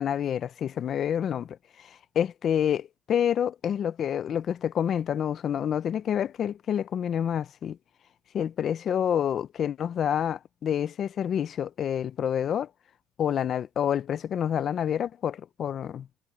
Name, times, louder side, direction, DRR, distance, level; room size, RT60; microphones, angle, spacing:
voice 1, 0.0-7.8 8.3-12.7 13.2-16.1, left 9 dB, 50° left, 0.6 m, -28 dB
cardioid pair, 120°, 0 cm